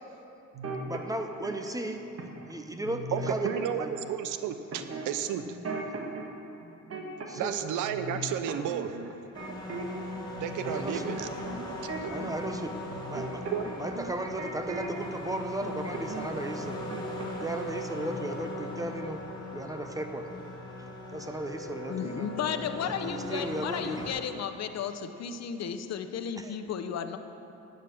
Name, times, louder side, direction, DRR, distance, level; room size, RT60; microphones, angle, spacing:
sound 1, 0.5-1.6 2.2-2.5 2.8-4.1 4.7-6.3 6.6-7.6 7.8-10.1 10.3-15.2 15.6-16.3 16.6-17.6 17.9-18.1, right 3 dB, 50° right, 1.5 m, -38 dB
voice 1, 0.9-2.0 2.5-3.9 7.3-7.5 10.7-11.2 12.1-12.8 13.1-13.4 13.8-16.8 17.4-19.2 19.5-20.3 21.1-22.3 22.8-24.1 26.4-26.6, right 1 dB, 10° right, 6 dB, 0.9 m, -35 dB
voice 2, 3.1-5.5 7.4-8.9 10.4-11.3 12.0-12.1 13.5-13.6, right 9 dB, 85° right, 10 dB, 0.7 m, -32 dB
sound 2, 9.3-24.1, left 1 dB, 15° left, 2.3 m, -39 dB
voice 3, 21.9-27.2, left 7 dB, 60° left, 8 dB, 0.8 m, -34 dB
11.0 x 8.2 x 6.4 m, 2.9 s
cardioid pair, 90°, 30 cm